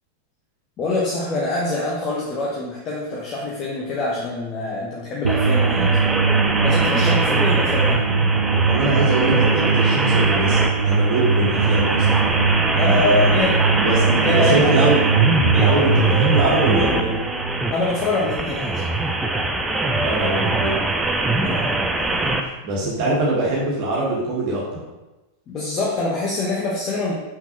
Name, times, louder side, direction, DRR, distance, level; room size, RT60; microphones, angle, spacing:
voice 1, 0.8-6.1 6.6-8.0 12.8-13.6 14.1-14.7 17.7-18.8 21.1-21.3 25.5-27.1, left 2 dB, 30° left, -4 dB, 1.0 m, -25 dB
sound 1, 5.2-18.4, right 5 dB, 70° right, 0.3 m, -21 dB
sound 2, 5.3-22.4, right 2 dB, 10° right, 0.6 m, -22 dB
voice 2, 8.6-12.1 12.7-13.4 13.7-15.0 15.5-17.2 20.0-20.8 21.3-21.7 22.2-22.3 22.6-24.6, right 2 dB, 45° right, -4 dB, 1.5 m, -22 dB
6.0 x 5.8 x 3.0 m, 1.1 s
figure-of-eight pair, 90°, 0 cm